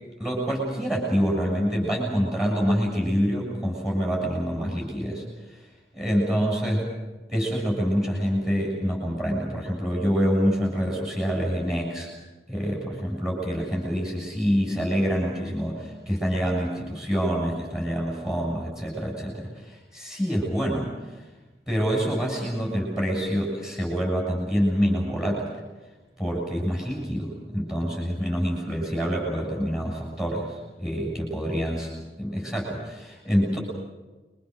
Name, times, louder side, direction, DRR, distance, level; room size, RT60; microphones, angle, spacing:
voice 1, 0.2-5.2 5.5-5.6 5.9-6.9 7.3-12.1 12.5-21.2 21.7-25.5 26.2-31.9 32.2-33.6, equal, 5° right, -2 dB, 7.2 m, -26 dB
29.5 x 24.0 x 6.6 m, 1.2 s
head